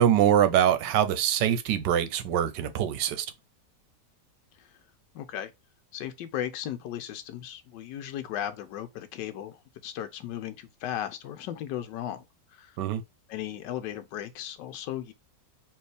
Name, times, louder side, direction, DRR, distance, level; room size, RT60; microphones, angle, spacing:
voice 1, 0.0-3.3 12.8-13.0, right 10 dB, 85° right, 1.3 m, -23 dB
voice 2, 5.1-5.5 5.9-12.2 12.5-12.8 13.3-15.1, left 11 dB, 90° left, 1.3 m, -36 dB
4.5 x 3.1 x 3.2 m
omnidirectional pair, 1.9 m